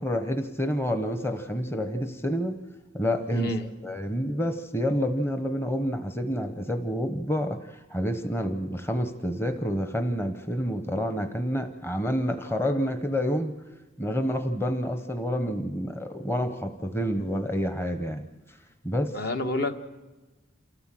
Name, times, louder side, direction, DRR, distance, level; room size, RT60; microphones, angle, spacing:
voice 1, 0.0-2.6 2.9-13.5 14.0-18.2 18.5-18.6 18.8-19.2, equal, 10° left, 7 dB, 0.9 m, -28 dB
voice 2, 3.3-3.7 19.1-19.7, left 2 dB, 55° left, 6 dB, 1.4 m, -28 dB
28.0 x 13.5 x 7.6 m, 1.2 s
head